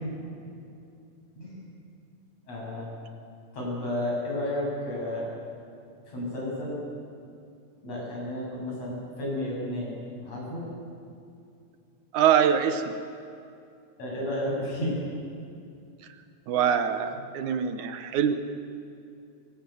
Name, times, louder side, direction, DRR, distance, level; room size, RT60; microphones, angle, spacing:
voice 1, 1.4-1.7 2.5-2.9 3.5-5.2 6.1-6.8 7.8-10.7 14.0-15.0, left 1 dB, 55° left, -4 dB, 9.2 m, -32 dB
voice 2, 12.1-13.0 16.5-18.4, right 8 dB, 75° right, 9 dB, 2.4 m, -24 dB
22.5 x 21.0 x 9.2 m, 2.5 s
omnidirectional pair, 3.6 m